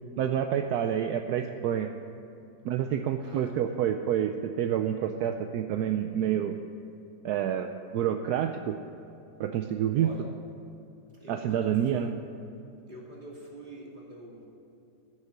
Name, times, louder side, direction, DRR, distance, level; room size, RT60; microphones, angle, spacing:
voice 1, 0.2-1.9 2.6-6.6 7.2-8.8 9.4-10.1 11.3-12.1, right 9 dB, 75° right, 6 dB, 1.1 m, -28 dB
voice 2, 3.2-3.6 10.0-10.2 11.1-12.1 12.9-14.5, right 1 dB, 30° right, -3 dB, 2.6 m, -45 dB
15.0 x 6.6 x 8.1 m, 2.7 s
omnidirectional pair, 1.8 m